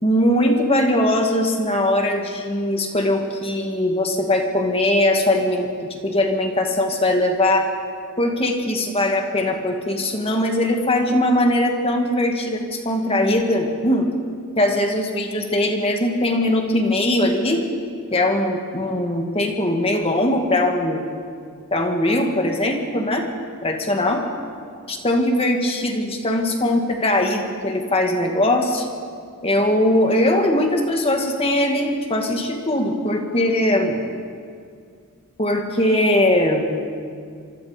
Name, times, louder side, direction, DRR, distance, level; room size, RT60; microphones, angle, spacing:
voice 1, 0.0-7.7 8.2-14.1 14.6-17.6 18.1-21.1 21.7-23.3 23.6-24.2 24.9-28.9 29.4-34.0 35.4-36.9, left 1 dB, 25° left, 3 dB, 2.3 m, -20 dB
26.5 x 24.5 x 5.2 m, 2.2 s
head